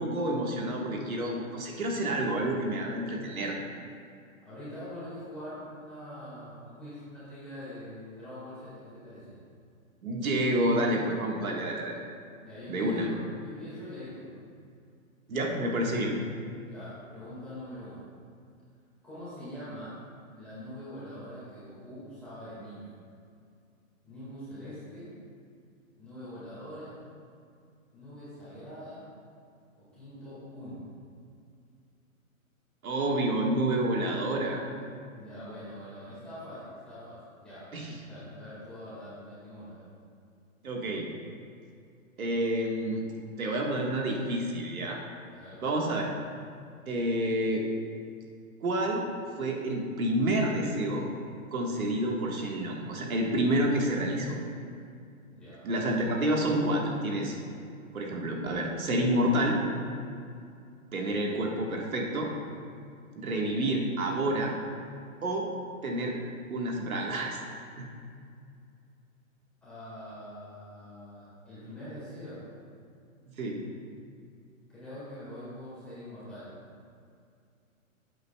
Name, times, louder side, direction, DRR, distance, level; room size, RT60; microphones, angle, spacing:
voice 1, 0.0-3.5 10.0-11.9 12.7-13.1 15.3-16.1 32.8-34.6 37.7-37.9 40.6-41.1 42.2-43.1 43.4-45.0 45.6-46.1 46.9-47.7 48.6-49.1 49.4-51.1 51.5-54.4 55.6-57.3 57.9-59.6 60.9-62.3 63.1-64.6 65.2-65.5 65.8-66.2 66.5-67.4 67.8-67.9 73.4-73.6, right 1 dB, 75° right, -1 dB, 1.7 m, -29 dB
voice 2, 4.4-9.4 12.4-14.3 16.6-18.0 19.0-20.0 20.3-22.9 24.0-25.1 26.0-27.0 27.9-29.1 29.8-30.9 35.2-37.6 38.1-39.9 45.3-45.6 55.3-55.7 69.6-72.5 74.7-76.6, equal, 5° left, -13 dB, 1.9 m, -43 dB
15.0 x 8.0 x 2.3 m, 2.4 s
hypercardioid pair, 180°, 42 cm